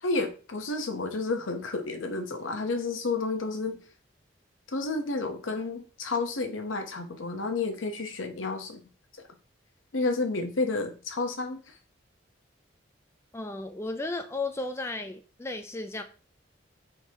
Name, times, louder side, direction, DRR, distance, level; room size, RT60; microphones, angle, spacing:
voice 1, 0.0-3.8 4.7-8.8 9.9-11.7, left 3 dB, 85° left, 6 dB, 0.8 m, -31 dB
voice 2, 13.3-16.0, left 2 dB, 15° left, 7 dB, 0.3 m, -34 dB
3.7 x 2.8 x 4.5 m, 0.36 s
head